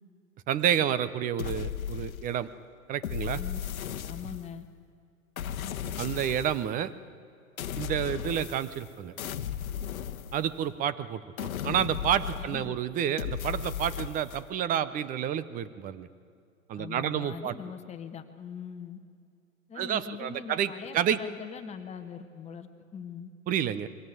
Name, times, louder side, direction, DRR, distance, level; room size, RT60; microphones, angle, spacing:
voice 1, 0.5-2.5 2.9-3.4 6.0-6.9 7.8-9.1 10.3-16.1 16.7-17.5 19.8-21.2 23.5-23.9, right 9 dB, 20° right, 15 dB, 0.7 m, -29 dB
sound 1, 1.4-2.5 3.0-4.7 5.4-6.7 7.6-8.9 9.2-10.8 11.4-12.7 13.2-14.4, left 9 dB, 80° left, 1.2 m, -36 dB
voice 2, 4.0-4.7 12.4-12.8 16.8-19.0 19.7-23.3, left 7 dB, 15° left, 6 dB, 1.4 m, -41 dB
23.0 x 17.0 x 9.3 m, 2.3 s
hypercardioid pair, 125°, 42 cm